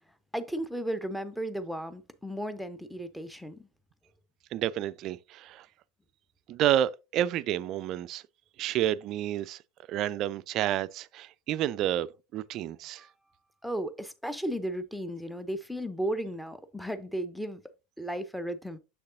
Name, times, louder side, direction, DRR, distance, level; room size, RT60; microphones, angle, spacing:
voice 1, 0.3-3.7 13.0-13.1 13.6-17.6 18.0-18.8, right 1 dB, ahead, 0.7 m, -35 dB
voice 2, 4.5-5.6 6.5-8.2 8.6-9.6 9.9-12.1 12.3-13.0, right 12 dB, 40° right, 0.3 m, -29 dB
7.0 x 6.6 x 2.5 m
figure-of-eight pair, 80°, 0 cm